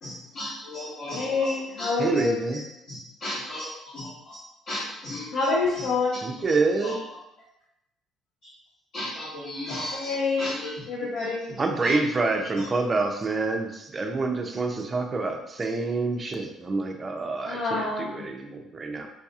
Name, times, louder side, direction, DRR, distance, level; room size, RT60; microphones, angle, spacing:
voice 1, 0.0-1.5 1.8-1.9 2.2-2.3 2.5-2.6 2.9-3.7 3.9-4.4 4.7-5.3 6.8-7.0 8.9-10.7 11.8-11.9, left 1 dB, 55° left, -10 dB, 1.1 m, -35 dB
voice 2, 1.1-2.4 5.3-6.1 9.9-10.5 10.9-11.5 17.4-18.3, left 3 dB, 75° left, -5 dB, 0.6 m, -27 dB
voice 3, 2.0-2.6 6.2-7.0 11.6-19.1, right 3 dB, 20° right, 3 dB, 0.4 m, -27 dB
4.6 x 2.8 x 2.3 m, 0.87 s
cardioid pair, 165°, 0 cm